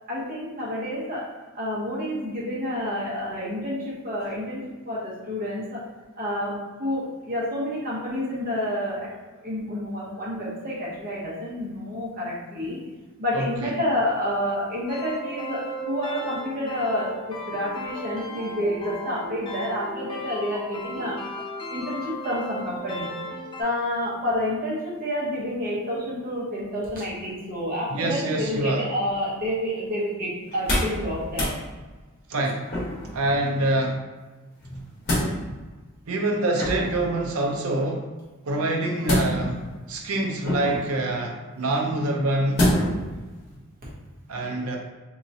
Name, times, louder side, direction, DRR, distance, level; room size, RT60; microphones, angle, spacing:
voice 1, 0.1-1.3 1.5-5.8 6.2-9.1 9.4-12.8 13.2-21.2 21.7-23.1 23.6-31.5, left 1 dB, 40° right, -6 dB, 1.0 m, -29 dB
voice 2, 13.3-13.7 27.9-28.9 32.3-32.7 33.1-34.0 36.1-38.0 38.4-39.6 39.9-42.6 44.3-44.8, right 2 dB, 80° right, 0 dB, 0.6 m, -25 dB
sound 1, 14.9-23.6, equal, 20° left, 0.4 m, -36 dB
sound 2, 30.5-31.0 31.3-31.6 32.7-33.2 34.6-35.3 36.5-37.0 39.0-39.7 40.4-40.9 42.6-43.0 43.5-43.6, left 1 dB, 50° left, 1.3 m, -25 dB
3.8 x 2.9 x 2.7 m, 1.3 s
head